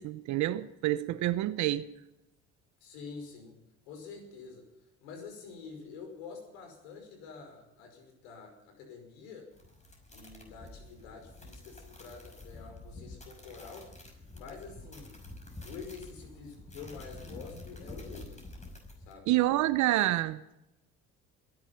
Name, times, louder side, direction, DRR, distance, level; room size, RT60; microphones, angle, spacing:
voice 1, 0.0-1.8 19.3-20.4, right 15 dB, 65° right, 0.9 m, -28 dB
voice 2, 2.8-4.7 5.0-9.5 10.1-13.9 14.3-15.2 15.6-18.4 19.1-19.3, left 5 dB, 85° left, 5.5 m, -47 dB
sound 1, 9.5-19.1, left 1 dB, 20° left, 5.9 m, -48 dB
22.0 x 11.0 x 5.9 m
supercardioid pair, 75°, 32 cm